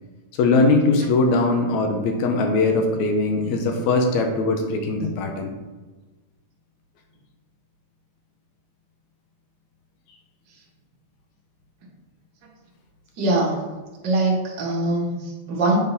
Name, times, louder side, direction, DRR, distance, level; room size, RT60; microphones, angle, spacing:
voice 1, 0.4-5.5, left 3 dB, 75° left, 3 dB, 1.8 m, -20 dB
voice 2, 13.2-13.6 14.0-15.8, right 2 dB, 50° right, -4 dB, 1.3 m, -22 dB
7.9 x 3.8 x 4.0 m, 1.2 s
omnidirectional pair, 3.9 m